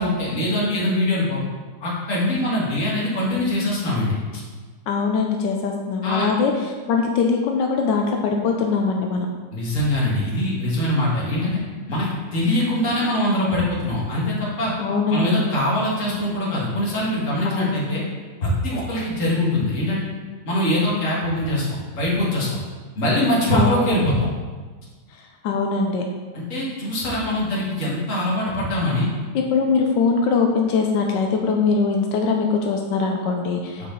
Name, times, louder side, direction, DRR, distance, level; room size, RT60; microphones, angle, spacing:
voice 1, 0.0-1.4 1.8-4.4 6.0-6.3 9.5-11.6 11.9-14.7 15.1-18.0 18.4-20.0 20.5-21.7 22.0-22.6 23.0-24.3 26.3-29.1 33.8-33.9, left 1 dB, 45° left, -5 dB, 2.0 m, -23 dB
voice 2, 4.9-6.5 6.9-9.3 14.8-15.4 17.4-17.8 23.5-23.7 25.4-26.0 29.5-33.9, left 5 dB, 90° left, 2 dB, 1.3 m, -21 dB
7.1 x 4.6 x 3.9 m, 1.4 s
omnidirectional pair, 1.9 m